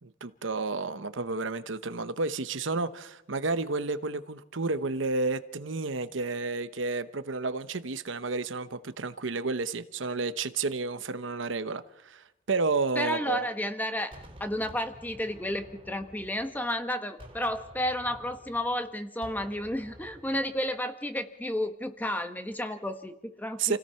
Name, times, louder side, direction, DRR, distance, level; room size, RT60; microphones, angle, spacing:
voice 1, 0.0-13.5 23.6-23.8, right 3 dB, 75° right, 0.9 m, -31 dB
voice 2, 12.9-14.1 14.4-23.8, left 1 dB, 10° left, 1.4 m, -32 dB
Gunshot gunfire, 14.1-16.8 17.2-20.7, equal, 25° right, 3.2 m, -51 dB
28.0 x 17.0 x 5.7 m
head